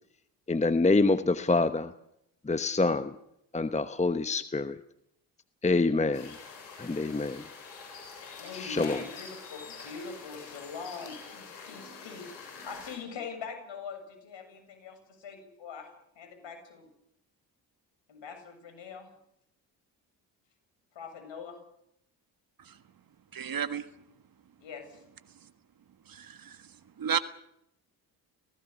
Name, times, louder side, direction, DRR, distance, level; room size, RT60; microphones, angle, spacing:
voice 1, 0.5-1.9 2.4-3.2 3.5-4.8 5.6-6.4 6.8-7.5 8.5-9.0, left 3 dB, 15° left, 12 dB, 1.1 m, -26 dB
sound 1, 6.1-13.0, left 5 dB, 90° left, 8.0 m, -46 dB
voice 2, 8.4-15.9 16.2-16.9 18.1-19.1 20.9-21.6 24.6-25.0, left 5 dB, 60° left, 7 dB, 7.7 m, -43 dB
voice 3, 23.3-23.9 26.1-26.7 27.0-27.2, right 8 dB, 45° right, 12 dB, 1.5 m, -32 dB
30.0 x 17.0 x 7.0 m, 0.78 s
hypercardioid pair, 45°, 50 cm